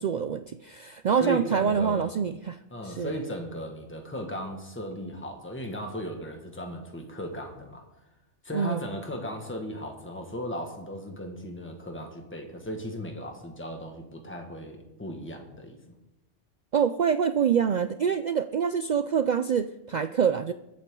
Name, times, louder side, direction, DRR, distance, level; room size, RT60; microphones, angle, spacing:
voice 1, 0.0-2.6 2.8-3.1 8.5-8.8 16.7-20.5, right 7 dB, 75° right, 11 dB, 0.4 m, -26 dB
voice 2, 1.2-2.2 2.7-7.8 8.4-15.8, equal, 10° left, 2 dB, 1.7 m, -36 dB
22.0 x 7.8 x 3.8 m, 0.95 s
omnidirectional pair, 1.3 m